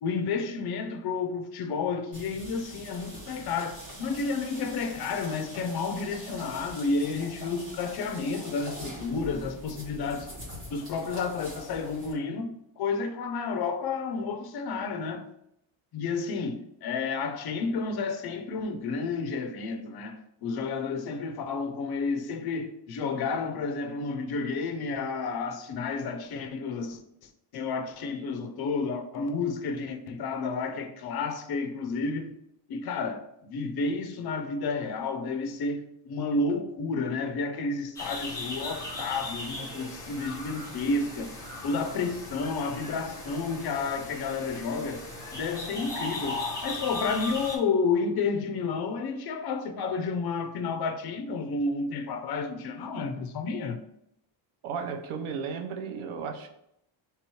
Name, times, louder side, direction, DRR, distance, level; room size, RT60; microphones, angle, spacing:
voice 1, 0.0-10.3 10.7-15.3 15.9-27.0 27.5-32.3 32.7-41.3 41.6-45.1 45.3-53.8, left 4 dB, 50° left, 0.5 m, -31 dB
sound 1, 2.1-12.1, equal, 25° right, 1.4 m, -43 dB
sound 2, 37.9-47.6, left 2 dB, 5° left, 0.9 m, -38 dB
voice 2, 54.6-56.5, right 6 dB, 90° right, 0.8 m, -34 dB
3.4 x 3.0 x 4.4 m
cardioid pair, 175°, 48 cm